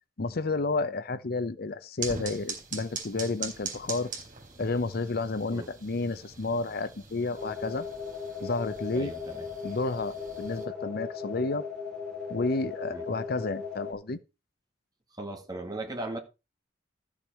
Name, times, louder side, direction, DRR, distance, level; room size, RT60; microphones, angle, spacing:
voice 1, 0.2-4.1 4.6-7.9 8.4-9.1 9.6-11.6 12.3-14.2, left 3 dB, 55° left, 0.7 m, -31 dB
sound 1, 2.0-10.7, right 5 dB, 45° right, 4.0 m, -42 dB
sound 2, 7.3-13.9, left 5 dB, 5° left, 5.6 m, -38 dB
voice 2, 8.9-9.5 12.9-13.0 15.1-16.2, right 2 dB, 20° right, 2.2 m, -37 dB
13.5 x 7.3 x 4.8 m
head